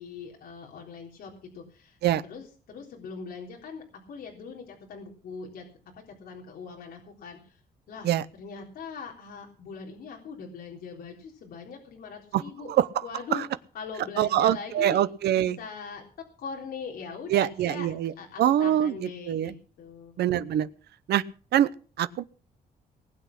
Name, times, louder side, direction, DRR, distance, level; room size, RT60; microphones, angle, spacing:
voice 1, 0.0-2.0 2.3-5.7 6.2-7.6 7.9-12.7 13.0-13.4 13.7-16.0 16.4-17.9 18.2-20.1, left 5 dB, 70° left, -1 dB, 3.7 m, -41 dB
voice 2, 14.2-15.6 17.3-18.1 18.4-19.5 20.2-20.7 21.1-21.2 21.5-21.7 22.0-22.3, right 11 dB, 90° right, 14 dB, 0.7 m, -24 dB
19.5 x 8.4 x 6.0 m, 0.41 s
wide cardioid pair, 175°, 16 cm